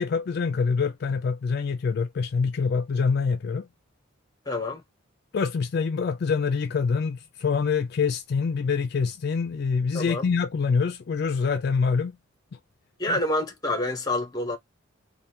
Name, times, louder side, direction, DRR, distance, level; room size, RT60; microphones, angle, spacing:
voice 1, 0.0-3.7 5.3-12.2 13.1-13.2, left 5 dB, 55° left, 0.3 m, -25 dB
voice 2, 4.5-4.8 9.9-10.3 13.0-14.6, left 1 dB, 20° left, 0.8 m, -27 dB
3.3 x 2.2 x 2.7 m
head